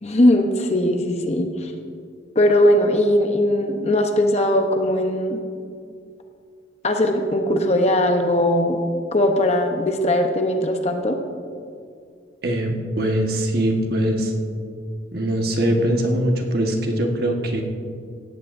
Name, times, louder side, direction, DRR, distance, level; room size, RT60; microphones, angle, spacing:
voice 1, 0.0-1.7 2.3-5.4 6.8-8.8 9.1-11.2, left 1 dB, 35° left, 4 dB, 0.9 m, -19 dB
voice 2, 12.4-14.3 15.1-17.6, right 1 dB, 55° right, 2 dB, 1.4 m, -22 dB
17.5 x 14.0 x 2.6 m, 2.2 s
head